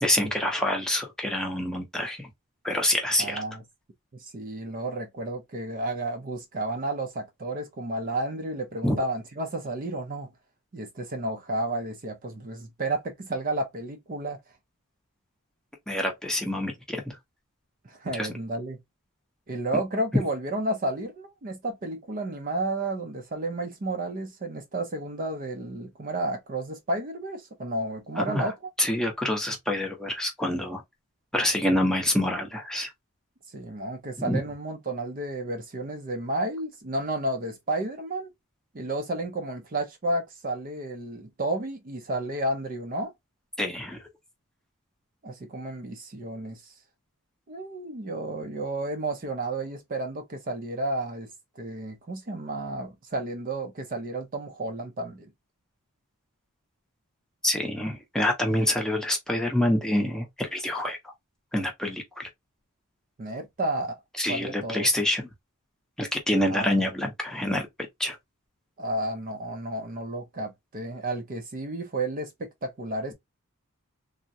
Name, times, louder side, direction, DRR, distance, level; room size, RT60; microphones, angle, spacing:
voice 1, 0.0-2.3 2.6-3.4 8.8-9.0 15.9-17.2 18.1-18.3 28.2-28.5 28.8-30.8 31.3-32.9 34.2-34.4 43.6-44.0 57.4-61.1 61.5-62.3 64.2-65.2 66.0-67.7 68.0-68.2, left 1 dB, 5° left, 0.7 m, -26 dB
voice 2, 3.2-3.6 4.1-10.3 10.7-14.4 17.8-18.8 19.5-28.5 33.5-38.3 38.7-43.1 45.2-46.7 47.5-51.3 51.6-55.3 63.2-64.0 64.3-64.9 66.5-66.8 68.8-73.1, right 2 dB, 40° right, 0.5 m, -32 dB
3.4 x 2.1 x 2.6 m
head